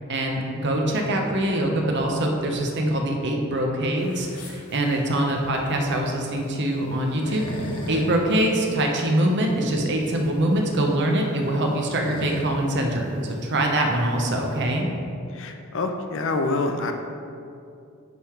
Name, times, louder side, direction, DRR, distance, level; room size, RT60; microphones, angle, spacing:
voice 1, 0.1-7.4 7.9-14.9, right 1 dB, 50° right, 1 dB, 0.8 m, -24 dB
sound 1, 4.0-14.8, left 1 dB, 85° left, 1.1 m, -39 dB
voice 2, 15.3-16.9, left 3 dB, 60° left, 5 dB, 0.6 m, -26 dB
9.5 x 3.7 x 4.5 m, 2.5 s
head